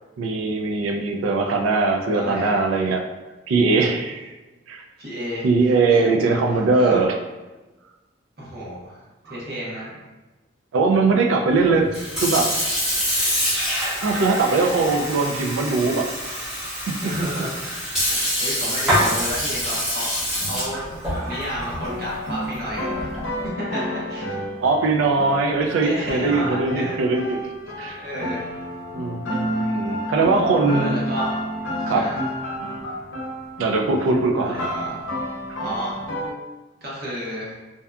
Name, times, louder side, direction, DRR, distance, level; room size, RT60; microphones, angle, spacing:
voice 1, 0.2-3.0 3.5-4.3 4.7-4.8 5.4-7.2 10.7-12.5 14.0-16.4 16.9-17.3 18.1-18.3 24.6-27.4 27.8-28.0 28.9-30.9 31.9-32.1 33.6-34.7, right 3 dB, 85° right, 3 dB, 0.3 m, -21 dB
voice 2, 2.1-2.6 5.0-6.3 6.8-7.0 8.4-10.0 17.0-17.8 18.1-23.1 23.6-24.3 25.8-27.0 27.9-28.5 30.7-31.4 31.8-32.2 34.4-35.0 35.6-36.0 36.8-37.6, equal, 50° right, -7 dB, 0.8 m, -31 dB
Sink (filling or washing) / Fill (with liquid), 11.8-23.4, equal, 5° right, 0.8 m, -26 dB
sound 1, 21.8-36.3, equal, 75° left, 0.6 m, -30 dB
2.6 x 2.3 x 2.2 m, 1.1 s
head